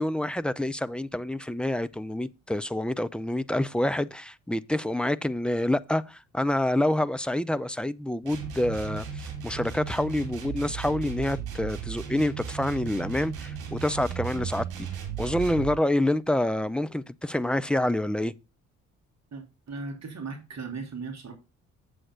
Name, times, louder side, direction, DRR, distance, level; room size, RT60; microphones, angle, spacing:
voice 1, 0.0-14.9 15.2-18.3, left 1 dB, ahead, 0.5 m, -27 dB
sound 1, 8.2-15.8, right 7 dB, 65° right, 3.0 m, -36 dB
voice 2, 19.3-21.3, right 4 dB, 40° right, 3.4 m, -37 dB
7.7 x 7.7 x 3.8 m
figure-of-eight pair, 45°, 40 cm